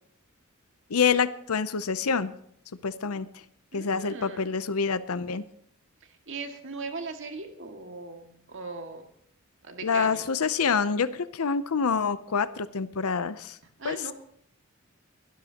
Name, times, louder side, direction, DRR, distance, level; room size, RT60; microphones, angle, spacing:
voice 1, 0.9-2.3 2.8-3.3 3.7-5.4 9.8-13.6 13.8-14.1, left 5 dB, 80° left, 14 dB, 0.7 m, -27 dB
voice 2, 3.7-4.5 6.3-9.1 9.6-10.3 13.8-14.1, right 4 dB, 60° right, 3 dB, 2.0 m, -39 dB
23.0 x 12.0 x 2.9 m, 0.66 s
head